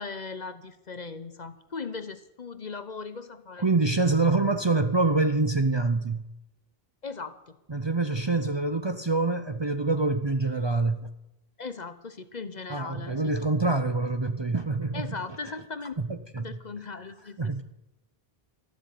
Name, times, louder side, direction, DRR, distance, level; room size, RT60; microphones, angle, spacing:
voice 1, 0.0-3.7 7.0-7.6 11.6-13.4 14.9-16.0 16.4-17.6, left 4 dB, 45° left, 12 dB, 1.0 m, -38 dB
voice 2, 3.6-6.2 7.7-11.1 12.7-15.1 16.0-16.6 17.4-17.6, right 3 dB, 30° right, 9 dB, 0.7 m, -26 dB
13.5 x 12.0 x 8.4 m, 0.89 s
omnidirectional pair, 1.0 m